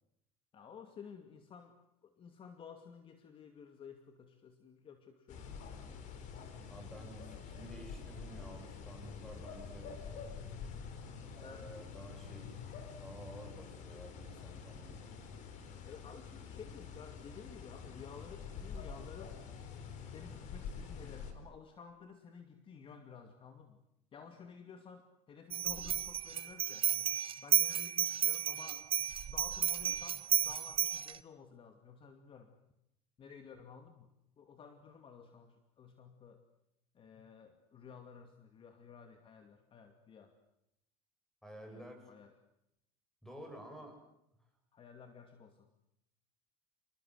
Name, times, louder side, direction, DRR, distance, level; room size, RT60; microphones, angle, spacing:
voice 1, 0.5-1.8 2.0-5.6 11.4-11.8 15.9-19.4 20.1-23.8 24.1-28.8 29.3-32.6 33.2-34.1 34.4-36.4 36.9-40.3 41.6-42.3 44.7-45.7, left 6 dB, 35° left, 7 dB, 2.4 m, -53 dB
sound 1, 5.3-21.3, left 6 dB, 55° left, 4.5 m, -47 dB
voice 2, 6.7-10.0 11.4-15.4 41.4-42.1 43.2-44.0, right 1 dB, 5° left, 5 dB, 7.9 m, -52 dB
sound 2, 25.5-31.2, right 10 dB, 40° right, 1.0 m, -33 dB
27.0 x 20.5 x 8.0 m, 0.81 s
supercardioid pair, 115°, 15 cm